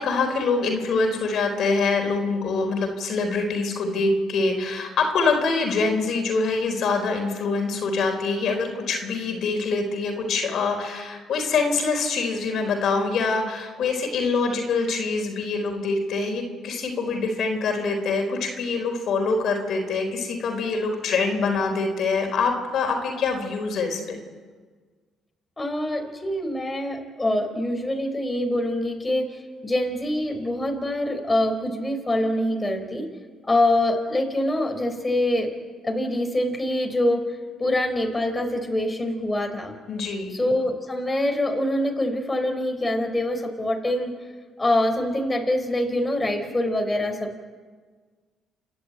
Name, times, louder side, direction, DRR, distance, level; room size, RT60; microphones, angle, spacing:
voice 1, 0.0-24.2 39.9-40.3, left 4 dB, 65° left, 4 dB, 4.1 m, -25 dB
voice 2, 25.6-33.1 33.5-35.5 35.8-37.3 37.6-39.7 40.3-44.2 44.6-47.4, left 1 dB, 20° left, 4 dB, 4.2 m, -25 dB
29.0 x 11.5 x 9.0 m, 1.5 s
supercardioid pair, 70°, 0 cm